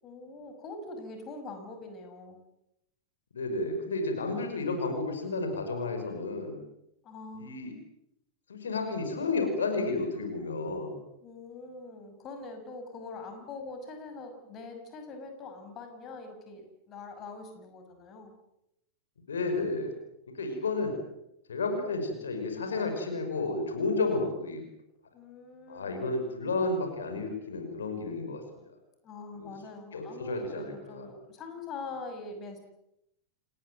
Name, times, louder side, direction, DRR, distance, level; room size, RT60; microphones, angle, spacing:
voice 1, 0.0-2.4 7.0-7.5 11.2-18.3 25.1-26.1 29.0-32.6, left 3 dB, 30° left, 6 dB, 6.3 m, -43 dB
voice 2, 3.3-6.6 7.3-7.7 8.5-11.0 19.3-19.9 20.4-20.9 21.5-24.6 25.7-28.4 29.3-29.5 29.9-31.1, left 3 dB, 70° left, 5 dB, 5.5 m, -31 dB
29.0 x 20.0 x 7.8 m, 0.81 s
figure-of-eight pair, 90°, 0 cm